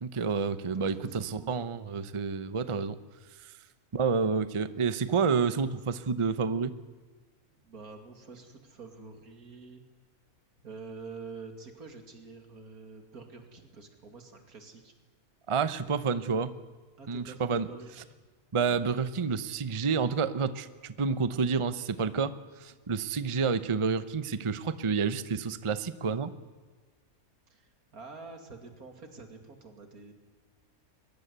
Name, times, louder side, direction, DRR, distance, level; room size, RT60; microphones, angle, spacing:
voice 1, 0.0-3.0 3.9-6.7 15.5-16.5 17.1-17.7 18.5-22.3 22.6-26.3, right 5 dB, 30° right, 13 dB, 0.7 m, -29 dB
voice 2, 0.7-1.8 7.5-9.8 10.6-14.9 17.0-18.2 27.5-30.1, right 4 dB, 90° right, 5 dB, 3.0 m, -47 dB
22.5 x 20.0 x 8.2 m, 1.4 s
omnidirectional pair, 1.5 m